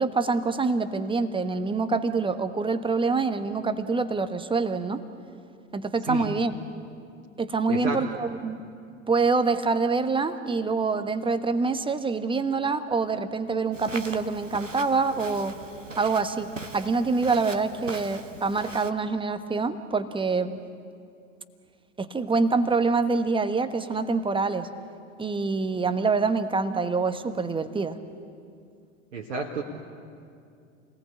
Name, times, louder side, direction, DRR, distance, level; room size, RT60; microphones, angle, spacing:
voice 1, 0.0-5.0 5.7-6.5 7.4-8.6 9.1-15.6 16.0-20.6 22.0-24.7 25.2-28.0, right 4 dB, 15° right, 10 dB, 1.2 m, -26 dB
voice 2, 7.7-8.0 29.1-29.6, right 5 dB, 75° right, -2 dB, 2.0 m, -30 dB
Walk footsteps, 13.7-18.9, right 3 dB, 90° right, 1.0 m, -41 dB
28.5 x 19.0 x 8.4 m, 2.4 s
figure-of-eight pair, 80°, 37 cm